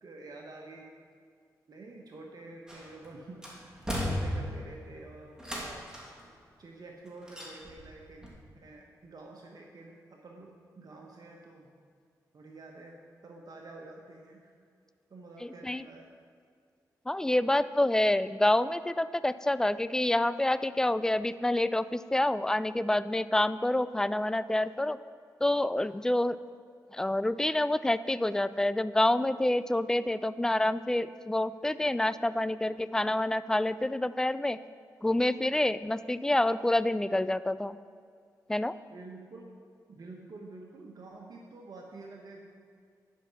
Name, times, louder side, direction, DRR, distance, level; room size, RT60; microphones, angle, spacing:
voice 1, 0.0-0.9 1.7-5.8 6.6-11.7 12.3-14.5 15.1-16.1 38.9-39.4 39.9-42.4, right 2 dB, 55° right, 0 dB, 1.1 m, -48 dB
sound 1, 2.7-3.1 3.4-4.8 5.4-6.2 7.3-7.9 8.2-8.3, equal, 10° right, 2.4 m, -35 dB
voice 2, 15.4-15.8 17.1-25.0 25.4-26.4 26.9-34.6 35.0-37.8 38.5-38.7, left 1 dB, 10° left, 14 dB, 0.3 m, -27 dB
10.5 x 5.6 x 5.8 m, 2.2 s
cardioid pair, 55°, 8 cm